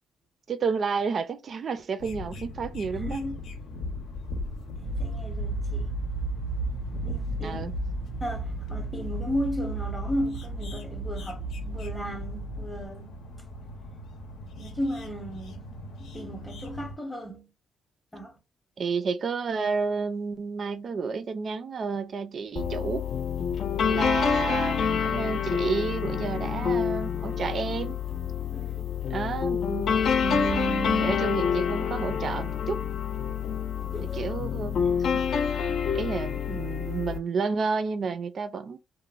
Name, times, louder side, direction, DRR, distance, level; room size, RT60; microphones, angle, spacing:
voice 1, 0.5-3.2 7.3-7.7 18.8-23.0 23.9-28.0 29.1-32.8 34.0-35.2 35.9-38.8, right 5 dB, 45° right, 0.4 m, -31 dB
sound 1, 2.0-16.9, left 2 dB, 75° left, 0.7 m, -40 dB
voice 2, 3.0-3.4 4.8-5.9 7.0-7.6 8.2-13.2 14.6-15.7 16.0-17.5 18.1-18.4 24.0-24.1 28.5-28.9 33.9-34.4, equal, 10° left, 0.7 m, -35 dB
sound 2, 4.8-12.9, right 2 dB, 85° right, 0.6 m, -33 dB
sound 3, 22.6-37.2, left 7 dB, 55° left, 0.4 m, -27 dB
3.0 x 2.0 x 2.4 m
cardioid pair, 120°, 0 cm